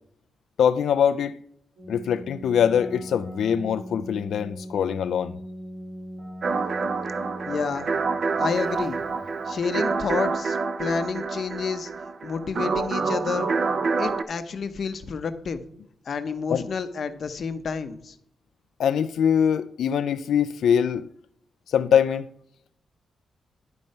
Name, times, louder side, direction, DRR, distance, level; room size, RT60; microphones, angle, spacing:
voice 1, 0.6-1.4 1.9-5.4 16.5-16.7 18.8-21.1 21.7-22.3, left 8 dB, 70° left, 0.3 m, -23 dB
Keyboard (musical), 1.8-9.9, equal, 75° right, 4.2 m, -40 dB
sound 1, 6.4-14.2, right 4 dB, 45° right, 0.5 m, -27 dB
voice 2, 7.5-7.9 8.4-9.0 9.5-11.9 12.2-13.5 14.0-15.6 16.1-18.1, left 5 dB, 45° left, 0.7 m, -29 dB
11.0 x 4.4 x 5.3 m
wide cardioid pair, 180°, 0 cm